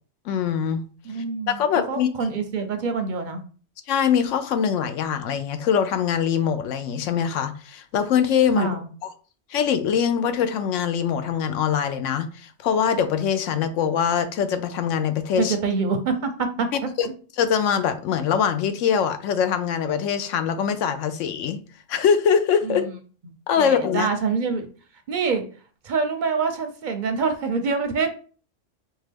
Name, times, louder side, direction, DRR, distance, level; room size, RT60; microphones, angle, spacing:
voice 1, 0.3-0.8 1.5-2.3 3.9-8.7 9.0-9.1 9.5-15.6 17.0-17.1 17.4-21.6 21.9-22.9 23.5-24.1, left 7 dB, 80° left, 0.9 m, -23 dB
voice 2, 1.0-1.6 1.9-3.4 8.5-8.9 15.4-16.7 22.6-22.9 23.6-24.7 25.1-25.4 25.8-28.1, right 5 dB, 55° right, 0.6 m, -25 dB
4.4 x 2.4 x 3.4 m
omnidirectional pair, 1.3 m